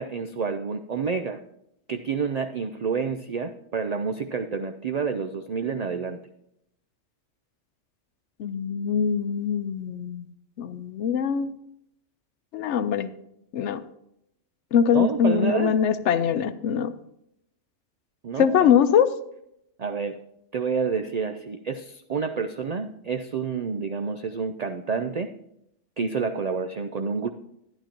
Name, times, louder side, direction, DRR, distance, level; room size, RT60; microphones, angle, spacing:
voice 1, 0.0-1.4 1.9-6.2 14.9-15.7 18.2-18.7 19.8-20.2 20.5-25.3 26.0-27.3, right 5 dB, 85° right, 7 dB, 0.3 m, -29 dB
voice 2, 8.4-10.3 10.6-11.5 12.5-13.1 13.5-13.8 14.7-16.9 18.4-19.1, left 8 dB, 70° left, 12 dB, 0.9 m, -22 dB
11.5 x 11.0 x 2.9 m, 0.78 s
omnidirectional pair, 1.3 m